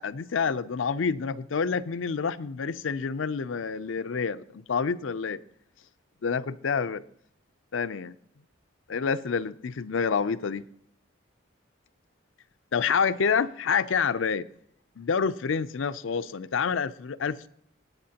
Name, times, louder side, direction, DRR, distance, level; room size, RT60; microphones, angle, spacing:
voice 1, 0.0-5.4 6.2-7.0 7.7-8.2 8.9-10.6 12.7-14.5 15.0-17.5, left 6 dB, 80° left, 0.5 m, -28 dB
23.0 x 9.1 x 2.9 m
head